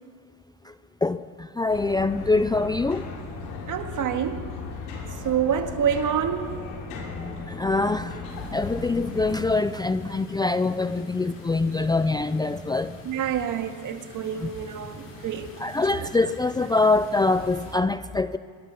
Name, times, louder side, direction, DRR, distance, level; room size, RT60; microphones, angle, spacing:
voice 1, 1.0-3.0 7.0-13.0 14.4-14.5 15.6-18.4, left 3 dB, 10° left, 0.5 m, -24 dB
sound 1, 1.7-9.3, left 4 dB, 85° left, 7.0 m, -37 dB
voice 2, 3.7-4.5 5.2-6.6 11.8-11.9 13.1-15.5 15.9-16.1, right 8 dB, 50° right, 2.1 m, -27 dB
sound 2, 8.3-17.8, left 3 dB, 35° left, 7.2 m, -45 dB
26.5 x 22.5 x 5.9 m
supercardioid pair, 100°, 40 cm